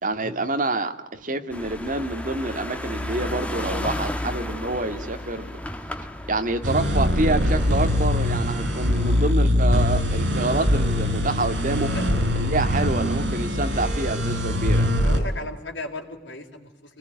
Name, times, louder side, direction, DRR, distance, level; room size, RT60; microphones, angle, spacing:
voice 1, 0.0-5.6 6.3-11.9 12.4-14.9, right 2 dB, 45° right, 7 dB, 2.0 m, -27 dB
sound 1, 1.5-9.3, left 1 dB, 5° left, 1.6 m, -33 dB
sound 2, 6.6-15.2, left 1 dB, 80° right, 5.9 m, -22 dB
voice 2, 15.0-17.0, left 2 dB, 75° left, 3 dB, 4.3 m, -36 dB
26.0 x 20.0 x 9.4 m, 0.98 s
head